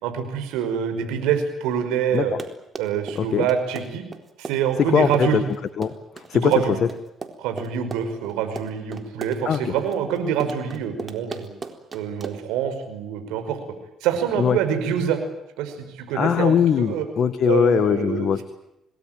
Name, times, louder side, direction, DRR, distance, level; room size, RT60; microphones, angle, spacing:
voice 1, 0.0-2.3 2.8-4.1 4.4-5.4 6.3-6.8 7.4-11.5 11.9-13.6 14.0-15.2 15.6-17.0 17.5-18.3, right 8 dB, 80° right, 7 dB, 5.3 m, -25 dB
Run, 2.2-12.6, right 4 dB, 35° right, 4.0 m, -37 dB
voice 2, 3.2-3.5 4.9-5.4 5.8-6.5 9.5-9.7 14.4-14.6 16.1-18.4, left 7 dB, 55° left, 11 dB, 1.8 m, -21 dB
27.5 x 20.0 x 9.2 m, 0.86 s
hypercardioid pair, 50°, 0 cm